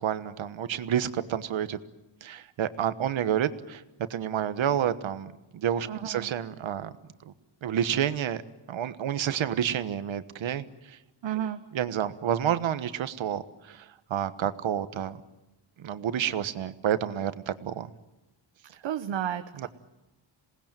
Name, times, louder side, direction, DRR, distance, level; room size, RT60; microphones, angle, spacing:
voice 1, 0.0-1.8 2.2-3.8 4.1-6.9 7.6-8.4 8.7-11.0 11.7-13.8 14.1-15.2 15.8-17.9 19.6-19.7, right 9 dB, 85° right, 12 dB, 1.4 m, -29 dB
voice 2, 5.8-6.3 11.2-11.6 18.8-19.7, right 10 dB, 70° right, 7 dB, 1.0 m, -32 dB
27.5 x 19.0 x 9.1 m, 1.0 s
wide cardioid pair, 155°, 45 cm